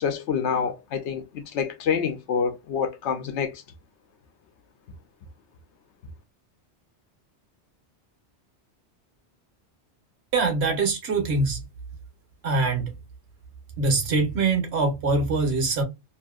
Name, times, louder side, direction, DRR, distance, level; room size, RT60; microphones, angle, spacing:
voice 1, 0.0-3.6, left 6 dB, 80° left, 0.9 m, -27 dB
voice 2, 10.3-11.6 12.4-13.0 13.8-15.8, right 3 dB, 70° right, 1.2 m, -23 dB
2.8 x 2.6 x 2.3 m
omnidirectional pair, 1.2 m